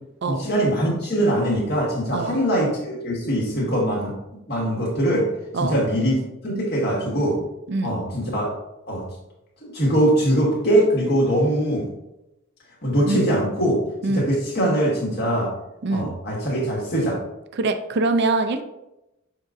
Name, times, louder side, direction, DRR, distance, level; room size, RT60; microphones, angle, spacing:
voice 1, 0.3-4.2 4.5-5.3 5.6-7.4 7.8-8.5 8.9-9.0 9.6-11.8 12.8-13.8 14.1-15.5 15.9-17.2, right 1 dB, 50° left, -3 dB, 2.1 m, -22 dB
voice 2, 17.5-18.7, right 3 dB, 55° right, 8 dB, 0.5 m, -24 dB
7.2 x 5.1 x 2.6 m, 0.91 s
head